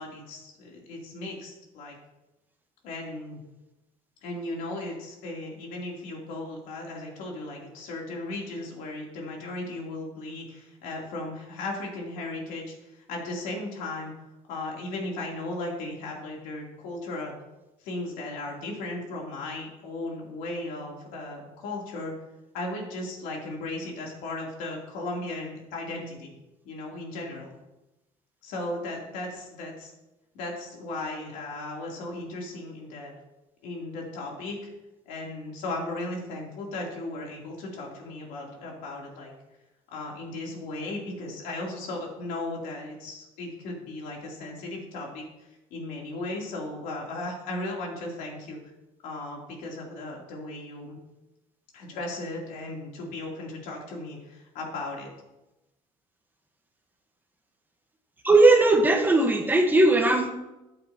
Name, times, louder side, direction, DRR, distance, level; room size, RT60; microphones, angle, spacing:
voice 1, 0.0-2.0 2.8-3.4 4.2-14.1 14.5-17.3 17.8-22.1 22.5-26.3 26.6-27.5 28.4-29.9 30.3-33.1 33.6-34.7 35.1-39.3 39.9-48.6 49.0-51.0 51.7-55.1, left 2 dB, 80° left, -1 dB, 3.1 m, -36 dB
voice 2, 58.2-60.3, right 2 dB, 15° right, 3 dB, 1.2 m, -18 dB
13.5 x 8.8 x 2.9 m, 0.99 s
cardioid pair, 125°, 14 cm